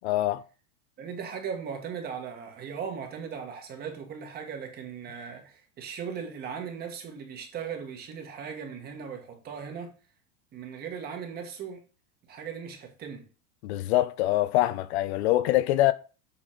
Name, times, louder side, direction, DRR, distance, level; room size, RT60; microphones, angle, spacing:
voice 1, 0.0-0.4 13.6-15.9, left 15 dB, 60° left, 0.6 m, -24 dB
voice 2, 1.0-9.9 10.5-11.8 12.2-13.3, right 7 dB, 25° right, 1.5 m, -38 dB
7.1 x 4.2 x 4.4 m
supercardioid pair, 165°, 37 cm